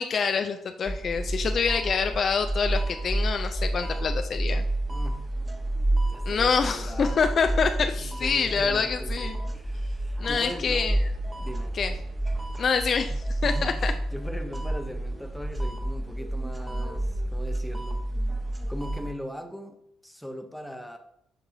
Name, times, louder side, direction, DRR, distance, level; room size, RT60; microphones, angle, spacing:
voice 1, 0.0-4.6 6.3-9.4 10.2-11.0 11.7-11.9 12.6-13.9, left 5 dB, 45° left, 7 dB, 0.4 m, -26 dB
sound 1, 0.8-19.1, right 1 dB, 25° right, 1.2 m, -30 dB
voice 2, 4.9-5.2 6.1-7.2 8.0-10.9 11.4-11.8 13.4-18.0 18.7-21.0, equal, ahead, 6 dB, 0.9 m, -40 dB
11.0 x 3.9 x 2.7 m, 0.81 s
figure-of-eight pair, 45°, 0 cm